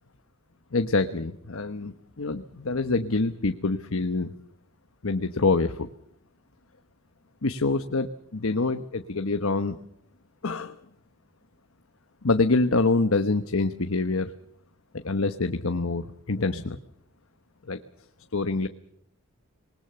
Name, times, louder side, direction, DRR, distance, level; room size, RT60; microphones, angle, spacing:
voice 1, 0.7-4.3 5.0-5.9 7.4-9.8 10.4-10.7 12.2-14.3 14.9-16.8 17.7-17.8 18.3-18.7, left 3 dB, 75° left, 9 dB, 1.1 m, -26 dB
26.5 x 20.5 x 6.9 m, 0.69 s
head